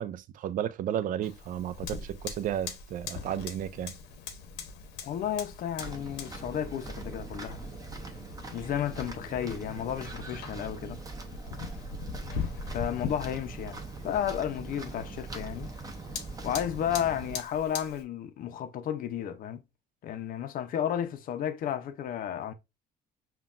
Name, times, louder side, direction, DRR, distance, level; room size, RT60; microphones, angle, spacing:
voice 1, 0.0-4.0, right 10 dB, 55° right, 0.4 m, -33 dB
Fire, 1.2-18.0, left 6 dB, 90° left, 0.9 m, -42 dB
voice 2, 5.0-7.6 8.5-11.0 12.7-13.8 14.0-15.7 16.4-19.6 20.0-22.5, left 10 dB, 55° left, 0.5 m, -32 dB
sound 1, 5.8-17.4, right 3 dB, 20° right, 0.8 m, -42 dB
5.6 x 2.3 x 2.4 m
cardioid pair, 110°, 17 cm